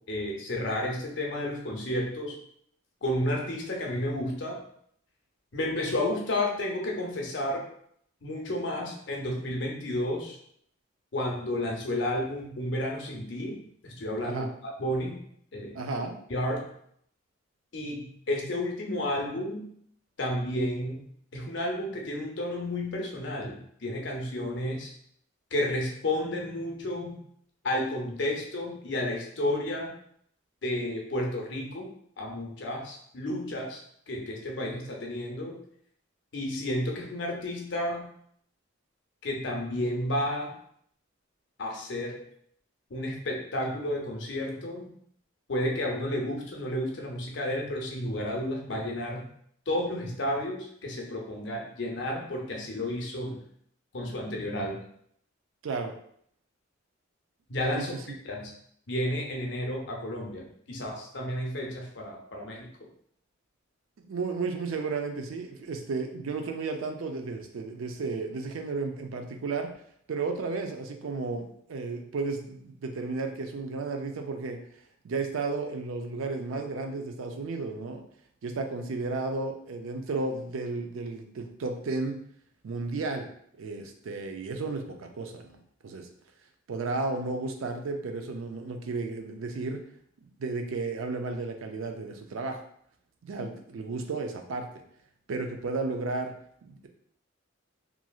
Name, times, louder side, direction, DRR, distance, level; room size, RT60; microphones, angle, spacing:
voice 1, 0.1-2.3 3.0-4.6 5.5-7.7 8.2-10.4 11.1-14.4 14.8-15.2 15.5-15.8 16.3-16.7 17.7-19.6 20.2-21.0 21.3-24.9 25.5-27.2 27.6-29.9 30.6-31.9 32.2-33.8 34.1-35.6 36.3-38.1 39.2-40.5 41.6-42.2 42.9-44.9 45.5-49.3 49.7-53.4 53.9-54.8 57.5-58.0 58.2-58.5 58.9-62.9, left 1 dB, 60° left, 0 dB, 0.6 m, -31 dB
voice 2, 15.7-16.2 55.6-55.9 57.8-57.9 64.1-69.7 70.1-74.6 75.0-78.0 78.4-82.2 82.6-83.3 83.6-86.1 86.7-89.8 90.4-92.6 93.2-94.7 95.3-96.3 96.6-96.9, right 3 dB, 90° right, 5 dB, 0.4 m, -33 dB
3.0 x 2.5 x 2.3 m, 0.66 s
head